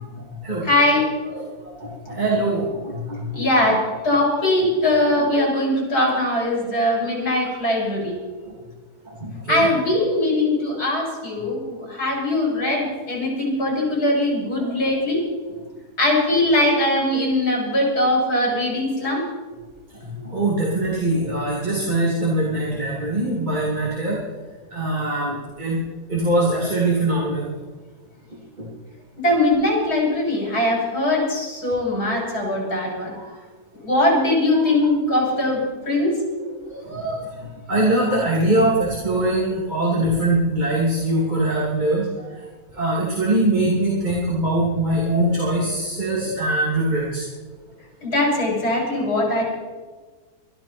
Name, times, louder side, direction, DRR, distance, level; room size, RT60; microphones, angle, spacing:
voice 1, 0.0-0.7 1.3-3.4 9.0-9.7 19.9-24.2 24.7-25.8 26.1-27.5 28.6-28.7 33.1-33.2 34.5-34.6 36.7-42.4 42.7-47.3, right 1 dB, 25° right, -5 dB, 2.9 m, -23 dB
voice 2, 0.6-1.2 3.3-8.2 9.5-15.2 16.0-19.3 29.2-33.1 33.8-36.2 48.0-49.4, left 1 dB, 70° left, -3 dB, 7.2 m, -21 dB
22.0 x 13.5 x 4.4 m, 1.4 s
omnidirectional pair, 1.7 m